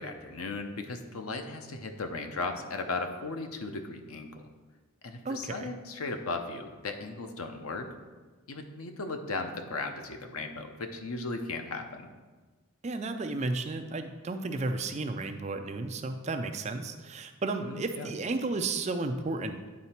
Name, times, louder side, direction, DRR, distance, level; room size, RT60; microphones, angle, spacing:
voice 1, 0.0-4.4 5.0-7.9 8.5-12.1 17.6-18.1, left 3 dB, 90° left, 6 dB, 0.7 m, -36 dB
voice 2, 5.2-5.7 12.8-19.8, right 3 dB, 30° right, 7 dB, 0.4 m, -33 dB
9.6 x 4.0 x 4.3 m, 1.3 s
head